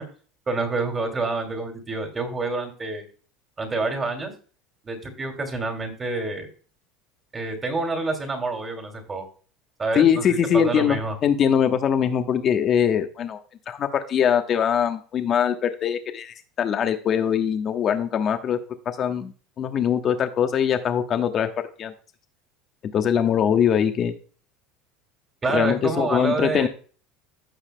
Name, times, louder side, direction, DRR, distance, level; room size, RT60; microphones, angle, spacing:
voice 1, 0.5-3.0 3.6-4.3 4.8-6.5 7.3-9.2 9.8-11.1 25.4-26.7, right 3 dB, 20° right, 3 dB, 2.6 m, -27 dB
voice 2, 9.9-13.4 13.7-18.6 18.8-21.5 21.8-21.9 22.9-24.1 25.5-26.7, left 8 dB, 40° left, 7 dB, 1.2 m, -22 dB
15.5 x 5.7 x 2.2 m, 0.39 s
supercardioid pair, 120°, 0 cm